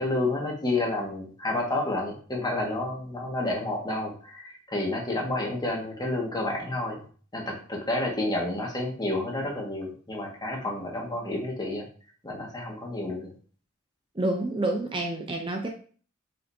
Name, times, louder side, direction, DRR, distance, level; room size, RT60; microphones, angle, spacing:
voice 1, 0.0-7.0 7.3-11.9 12.2-13.3, left 2 dB, 20° left, -1 dB, 1.8 m, -30 dB
voice 2, 14.1-15.7, right 2 dB, 25° right, 3 dB, 0.7 m, -28 dB
7.7 x 5.2 x 2.8 m, 0.42 s
head